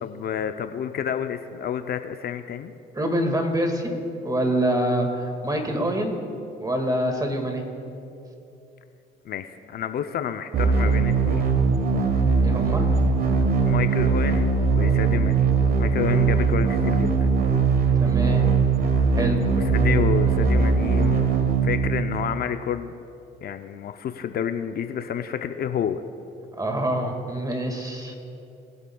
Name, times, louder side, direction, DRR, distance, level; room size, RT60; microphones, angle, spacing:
voice 1, 0.0-2.7 9.3-11.5 13.7-15.5 15.8-17.3 19.5-21.3 21.6-22.9 23.4-26.0, left 9 dB, 55° left, 8 dB, 0.6 m, -29 dB
voice 2, 2.9-4.0 4.2-6.2 6.6-7.6 12.4-12.9 18.0-18.5 19.2-19.4 26.6-28.1, right 1 dB, 20° right, 4 dB, 1.9 m, -25 dB
sound 1, 10.5-22.5, right 5 dB, 55° right, 1.3 m, -20 dB
21.5 x 8.1 x 2.3 m, 2.7 s
supercardioid pair, 70°, 19 cm